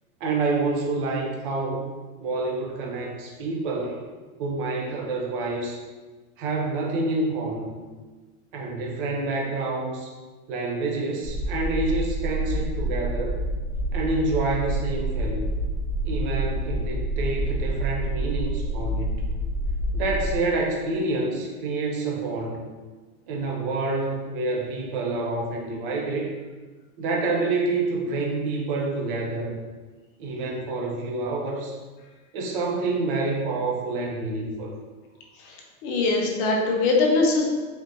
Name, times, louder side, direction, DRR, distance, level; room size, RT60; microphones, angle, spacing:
voice 1, 0.2-1.9 2.2-4.0 4.4-5.8 6.4-7.7 8.5-10.1 10.5-13.3 13.9-15.5 16.0-19.3 19.9-22.6 23.3-26.3 27.0-29.6 30.2-31.8 32.3-34.8, right 3 dB, 40° right, -1 dB, 0.5 m, -28 dB
sound 1, 11.2-20.4, right 1 dB, 70° right, 1.1 m, -28 dB
voice 2, 35.8-37.4, left 3 dB, 35° left, -1 dB, 0.6 m, -22 dB
3.5 x 2.8 x 2.5 m, 1.3 s
supercardioid pair, 145°, 44 cm